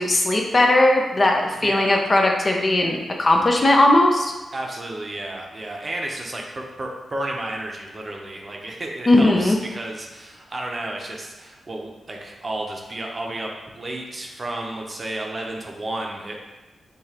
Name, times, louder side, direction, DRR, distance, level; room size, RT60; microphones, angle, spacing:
voice 1, 0.0-4.3 9.1-9.6, left 1 dB, 40° left, 1 dB, 0.5 m, -18 dB
voice 2, 1.6-2.1 4.5-16.4, right 1 dB, 40° right, 0 dB, 0.7 m, -32 dB
4.8 x 2.5 x 2.8 m, 1.1 s
cardioid pair, 65°, 0 cm